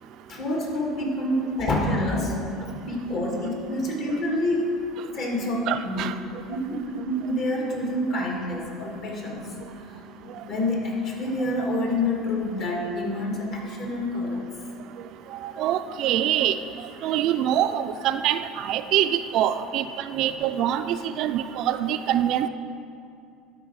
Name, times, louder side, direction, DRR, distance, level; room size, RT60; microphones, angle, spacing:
voice 1, 0.3-4.7 5.1-6.2 6.5-9.5 9.9-14.4 20.1-20.2, left 1 dB, 50° left, -1 dB, 2.0 m, -27 dB
voice 2, 5.7-6.1 15.4-16.6 17.0-19.8 20.1-22.5, right 11 dB, 60° right, 10 dB, 0.3 m, -24 dB
12.0 x 4.5 x 4.7 m, 2.4 s
supercardioid pair, 115°, 0 cm